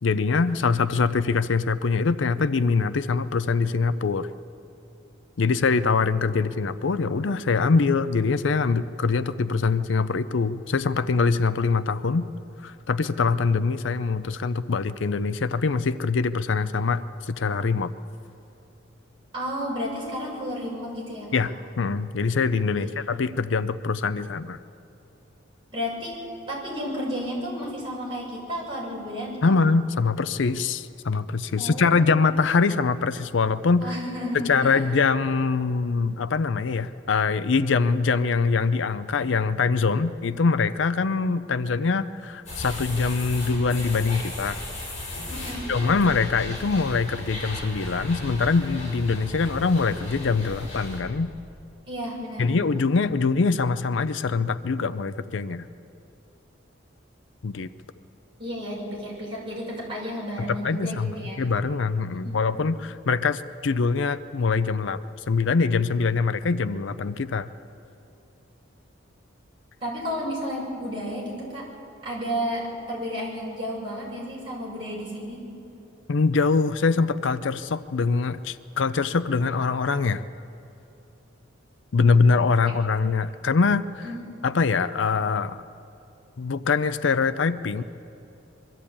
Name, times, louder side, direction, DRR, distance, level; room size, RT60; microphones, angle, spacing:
voice 1, 0.0-4.3 5.4-12.3 12.6-17.9 21.3-24.6 29.4-33.9 34.3-44.6 45.7-51.3 52.4-55.7 57.4-57.7 60.5-61.1 61.4-65.0 65.3-67.5 76.1-80.2 81.9-84.1 84.4-85.6 86.4-87.8, left 4 dB, 70° left, 13 dB, 0.5 m, -23 dB
voice 2, 19.3-21.4 22.7-22.9 25.7-26.2 26.5-29.4 31.5-32.2 33.8-34.8 45.3-45.7 51.9-52.5 58.4-61.4 62.1-62.4 69.8-71.7 72.0-75.4 84.0-84.2, equal, 25° right, -5 dB, 6.8 m, -32 dB
sound 1, 42.5-51.0, left 1 dB, 40° left, 6.7 m, -36 dB
22.5 x 13.5 x 8.6 m, 2.9 s
head